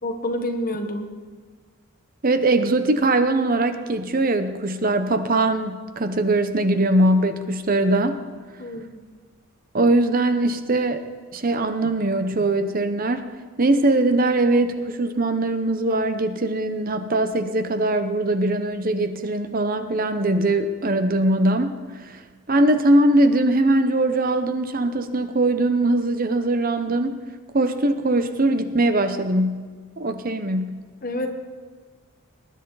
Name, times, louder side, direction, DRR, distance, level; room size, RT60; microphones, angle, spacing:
voice 1, 0.0-1.1 8.6-9.0 31.0-31.3, left 1 dB, 40° left, 4 dB, 1.3 m, -28 dB
voice 2, 2.2-8.2 9.7-11.0 11.3-13.2 13.6-22.2 22.5-27.1 27.5-29.7 30.0-30.8, right 2 dB, 40° right, 9 dB, 0.7 m, -21 dB
19.5 x 10.5 x 4.0 m, 1.5 s
head